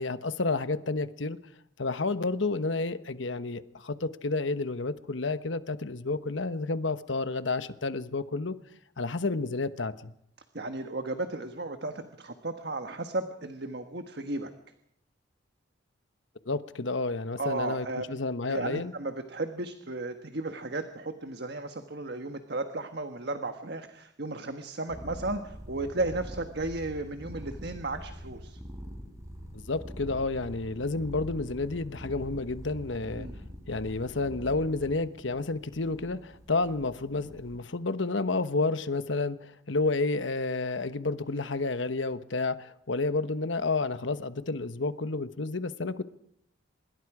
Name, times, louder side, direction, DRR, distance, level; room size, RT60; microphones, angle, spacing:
voice 1, 0.0-1.4 1.8-8.6 9.0-10.1 16.5-18.9 29.7-33.3 33.7-46.0, left 3 dB, 75° left, 1.1 m, -30 dB
voice 2, 10.5-14.5 17.4-18.0 18.5-28.6 33.2-33.4, right 2 dB, 55° right, 1.4 m, -34 dB
sound 1, 24.9-37.6, equal, 15° right, 5.2 m, -44 dB
25.5 x 21.5 x 4.9 m
head